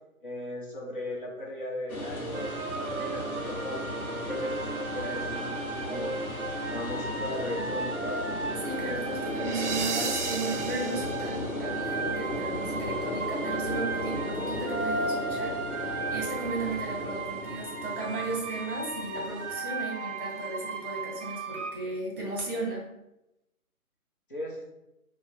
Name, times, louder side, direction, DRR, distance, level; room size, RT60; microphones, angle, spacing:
voice 1, 0.2-6.2 6.7-8.2 24.3-24.6, left 1 dB, 35° left, -5 dB, 0.9 m, -37 dB
sound 1, 1.9-19.5, left 1 dB, 75° left, 1.1 m, -36 dB
sound 2, 2.3-21.7, right 3 dB, 55° right, 0.5 m, -35 dB
voice 2, 8.6-22.9, right 2 dB, 35° right, -2 dB, 1.0 m, -35 dB
3.2 x 2.2 x 3.9 m, 0.90 s
figure-of-eight pair, 140°, 44 cm